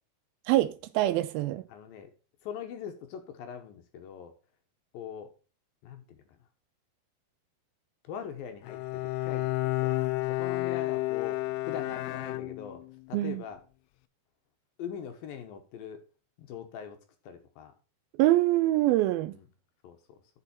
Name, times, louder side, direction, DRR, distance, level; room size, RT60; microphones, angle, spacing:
voice 1, 0.5-1.6 13.1-13.4 18.2-19.3, right 15 dB, 85° right, 2.1 m, -25 dB
voice 2, 1.7-2.1 2.4-4.3 4.9-5.3 5.8-6.2 8.0-10.0 10.3-12.8 13.1-13.6 14.8-16.0 16.4-17.0 17.2-17.7 19.3-19.5 19.8-20.2, left 8 dB, 70° left, 2.5 m, -42 dB
Bowed string instrument, 8.6-13.0, left 21 dB, 85° left, 2.6 m, -31 dB
8.9 x 6.2 x 4.2 m
omnidirectional pair, 4.7 m